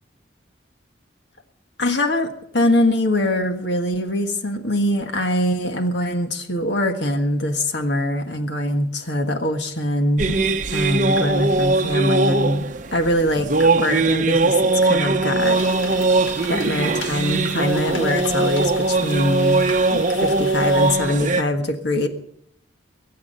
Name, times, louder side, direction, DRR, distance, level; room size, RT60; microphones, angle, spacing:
voice 1, 1.8-10.4 10.7-12.6 12.9-16.1 16.5-19.6 19.9-22.1, left 1 dB, 65° left, 5 dB, 1.6 m, -23 dB
sound 1, 10.2-21.4, right 3 dB, 40° right, 0.8 m, -20 dB
sound 2, 15.4-21.0, left 4 dB, 85° left, 1.6 m, -37 dB
23.5 x 8.5 x 5.6 m, 0.71 s
head